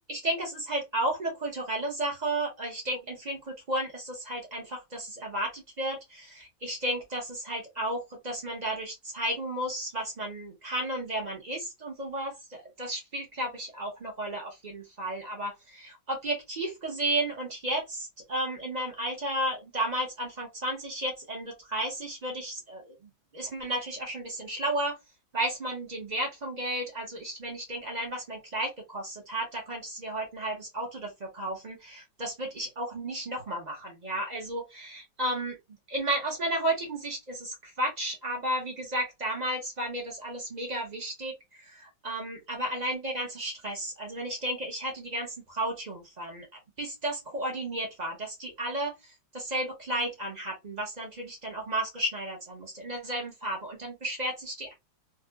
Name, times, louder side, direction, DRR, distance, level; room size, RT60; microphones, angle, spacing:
voice 1, 0.0-22.9 23.3-25.0 25.3-35.6 35.9-54.7, right 1 dB, 35° right, 0.7 m, -33 dB
4.5 x 2.4 x 2.3 m
omnidirectional pair, 2.1 m